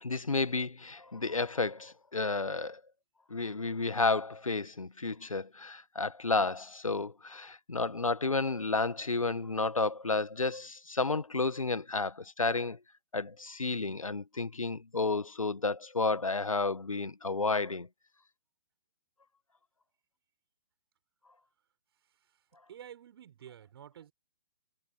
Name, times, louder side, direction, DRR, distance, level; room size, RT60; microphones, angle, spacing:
voice 1, 0.0-2.8 3.3-12.8 13.1-17.9, left 3 dB, 80° left, 1.4 m, -31 dB
voice 2, 22.0-24.1, right 10 dB, 50° right, 7.3 m, -51 dB
figure-of-eight pair, 125°, 17 cm